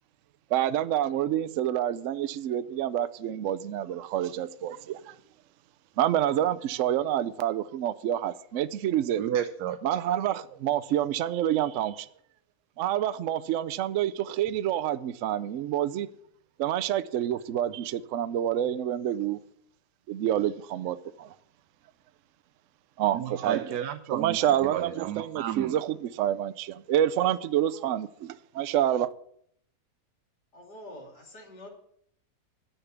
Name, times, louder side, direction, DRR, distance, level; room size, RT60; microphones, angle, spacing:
voice 1, 0.5-5.2 6.0-9.2 9.8-12.1 12.8-16.1 16.6-19.4 20.1-21.3 23.0-23.6 24.1-29.1, right 11 dB, 65° right, 0.8 m, -28 dB
voice 2, 9.2-9.8 23.1-25.8, right 10 dB, 85° right, 1.2 m, -32 dB
voice 3, 30.5-31.7, left 1 dB, 90° left, 3.4 m, -46 dB
10.0 x 5.9 x 8.3 m
omnidirectional pair, 1.7 m